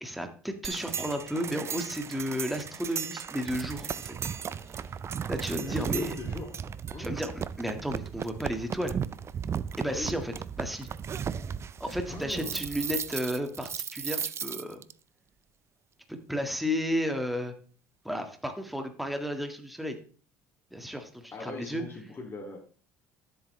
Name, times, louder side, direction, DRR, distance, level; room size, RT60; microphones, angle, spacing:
voice 1, 0.0-4.2 5.3-6.2 7.0-9.0 9.8-10.9 11.8-14.8 16.1-17.5 18.1-20.0 20.7-21.8, equal, ahead, 6 dB, 1.7 m, -33 dB
sound 1, 0.6-14.9, right 7 dB, 40° right, 0.6 m, -36 dB
voice 2, 5.6-6.5 6.9-7.3 9.8-10.2 12.1-12.7 21.3-22.6, left 3 dB, 30° left, 1 dB, 2.5 m, -40 dB
13.0 x 7.8 x 3.2 m, 0.41 s
supercardioid pair, 80°, 7 cm